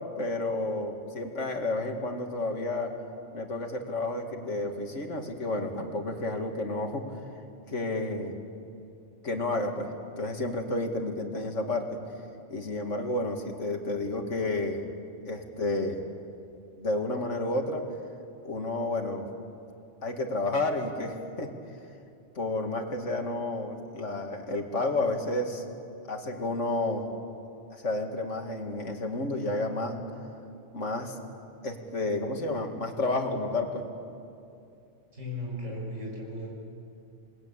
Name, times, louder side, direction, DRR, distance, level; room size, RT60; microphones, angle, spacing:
voice 1, 0.2-2.9 3.3-7.0 7.7-8.4 9.2-9.9 10.2-11.9 12.5-14.8 15.3-16.0 16.8-17.9 18.4-19.2 20.0-21.5 22.4-25.6 26.1-27.1 27.7-30.0 30.7-31.1 31.6-33.8, left 2 dB, 80° left, 3 dB, 2.6 m, -31 dB
voice 2, 35.1-36.5, left 1 dB, 90° right, -2 dB, 7.4 m, -36 dB
28.5 x 20.5 x 8.9 m, 2.6 s
omnidirectional pair, 1.2 m